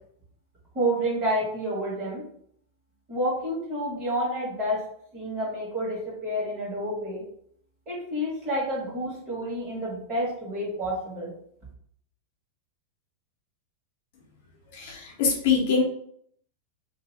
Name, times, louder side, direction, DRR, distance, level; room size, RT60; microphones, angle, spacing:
voice 1, 0.7-2.3 3.1-4.8 5.1-7.2 7.9-11.3, equal, 20° right, -5 dB, 1.5 m, -29 dB
voice 2, 14.7-15.8, left 5 dB, 45° left, -1 dB, 0.8 m, -24 dB
2.7 x 2.6 x 4.1 m, 0.66 s
supercardioid pair, 175°, 0 cm